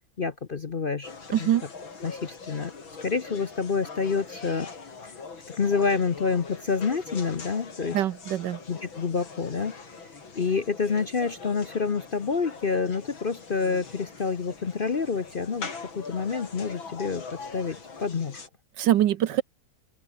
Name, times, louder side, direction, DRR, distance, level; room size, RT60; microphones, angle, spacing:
voice 1, 0.2-1.5 2.0-2.7 3.0-4.7 5.6-8.0 8.7-9.7 10.3-15.7 15.9-17.2 17.5-18.4, left 5 dB, 50° left, 0.6 m, -28 dB
sound 1, 1.0-18.5, left 4 dB, 75° left, 4.2 m, -42 dB
voice 2, 1.3-1.6 7.9-8.6 18.8-19.4, right 12 dB, 70° right, 1.3 m, -23 dB
open air
omnidirectional pair, 2.2 m